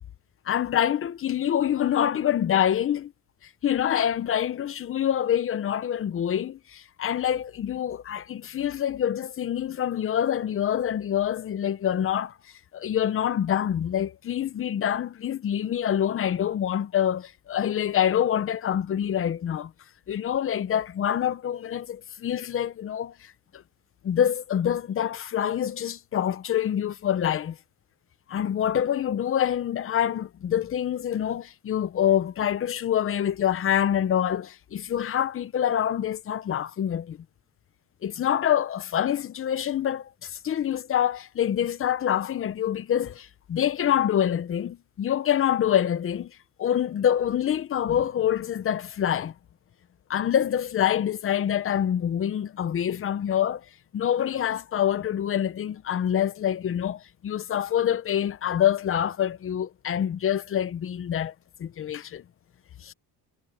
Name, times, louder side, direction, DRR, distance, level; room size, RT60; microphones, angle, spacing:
voice 1, 0.5-3.1 3.6-12.3 12.7-19.7 20.1-23.6 24.0-27.6 28.3-37.2 38.0-46.3 46.6-49.3 50.1-53.6 53.9-61.3 61.6-62.2 62.8-62.9, left 10 dB, 35° left, 0.7 m, -26 dB
cardioid pair, 145°, 39 cm